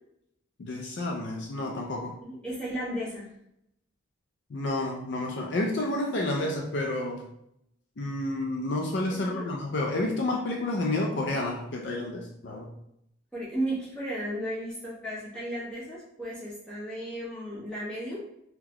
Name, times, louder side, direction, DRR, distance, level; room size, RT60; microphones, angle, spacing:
voice 1, 0.6-2.2 4.5-7.2 8.0-12.7, left 2 dB, 60° left, 1 dB, 0.4 m, -30 dB
voice 2, 2.2-3.3 9.1-9.4 13.3-18.2, right 1 dB, 5° left, -8 dB, 1.1 m, -34 dB
3.8 x 2.2 x 2.9 m, 0.77 s
head